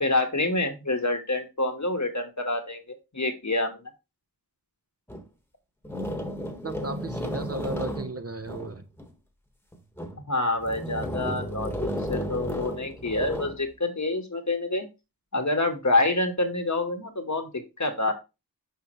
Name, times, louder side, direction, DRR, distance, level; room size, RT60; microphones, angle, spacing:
voice 1, 0.0-3.8 10.2-14.9 15.3-18.1, left 2 dB, 50° left, 1.3 m, -27 dB
sound 1, 5.1-5.2 5.8-9.1 9.7-10.2 10.6-13.6, equal, 5° left, 1.2 m, -33 dB
voice 2, 6.6-8.8, right 2 dB, 40° right, 0.8 m, -35 dB
5.7 x 5.6 x 3.0 m
wide cardioid pair, 40°, 36 cm